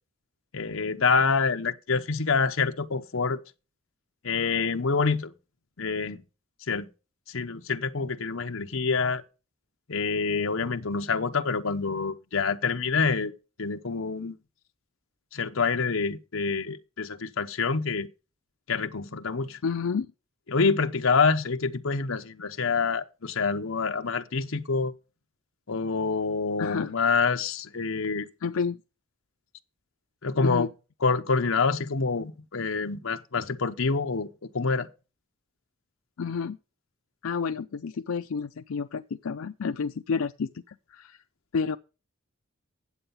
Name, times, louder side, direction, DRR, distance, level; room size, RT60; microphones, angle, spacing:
voice 1, 0.5-3.4 4.2-5.3 5.8-6.2 6.7-6.9 7.3-9.2 9.9-13.3 13.6-14.4 15.3-18.1 18.7-19.6 20.5-24.9 25.7-28.3 30.2-30.7 31.0-34.9, left 4 dB, 70° left, 0.9 m, -26 dB
voice 2, 19.6-20.1 26.6-26.9 28.4-28.8 30.4-30.7 36.2-36.6 37.2-41.2 41.5-41.8, left 5 dB, 90° left, 0.5 m, -30 dB
9.6 x 7.9 x 5.6 m
head